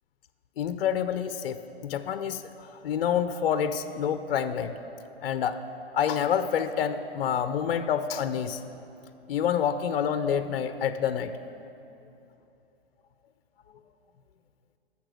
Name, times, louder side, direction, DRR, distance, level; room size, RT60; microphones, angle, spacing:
voice 1, 0.6-4.7 5.2-5.6 5.9-8.6 9.3-11.3, left 8 dB, 65° left, 11 dB, 0.6 m, -28 dB
11.5 x 6.9 x 6.3 m, 2.8 s
hypercardioid pair, 125°, 31 cm